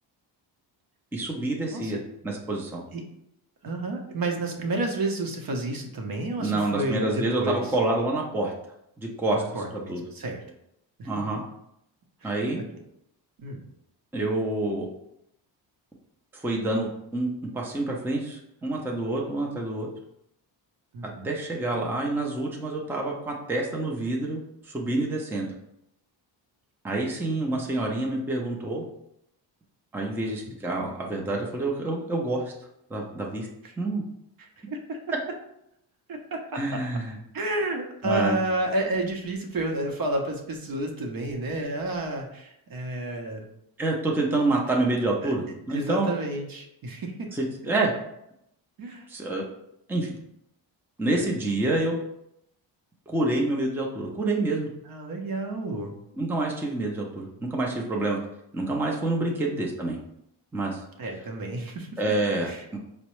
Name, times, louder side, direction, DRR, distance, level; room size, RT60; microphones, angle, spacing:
voice 1, 1.1-2.8 6.4-8.5 9.0-9.4 9.7-10.0 11.1-11.4 12.2-12.6 14.1-14.9 16.3-17.3 17.5-19.9 21.2-24.4 24.6-25.5 26.8-28.8 29.9-32.5 32.9-33.5 33.8-34.0 36.6-37.2 38.0-38.4 43.8-46.1 47.3-47.9 49.1-49.5 49.9-50.2 51.0-52.0 53.1-54.7 56.2-58.2 58.5-60.0 60.5-60.8 62.0-62.8, right 2 dB, 5° right, -1 dB, 0.5 m, -27 dB
voice 2, 3.6-7.7 9.3-10.4 11.0-11.1 12.2-12.6 13.4-13.6 20.9-21.3 33.6-33.7 34.7-35.0 36.1-36.6 37.3-43.4 45.2-45.3 45.7-47.3 48.8-49.1 51.1-51.2 54.9-55.9 59.2-59.5 61.0-61.9 62.4-62.8, right 2 dB, 50° right, 2 dB, 0.8 m, -31 dB
4.4 x 2.1 x 3.0 m, 0.79 s
cardioid pair, 90°, 46 cm